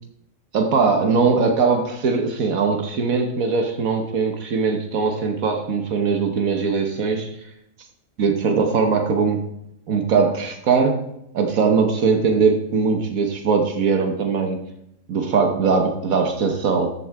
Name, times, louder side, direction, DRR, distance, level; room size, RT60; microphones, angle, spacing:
voice 1, 0.5-7.3 8.2-9.4 9.9-11.0 11.3-14.6 15.1-16.9, right 5 dB, 80° right, 4 dB, 1.6 m, -20 dB
14.0 x 8.4 x 3.5 m, 0.80 s
omnidirectional pair, 1.4 m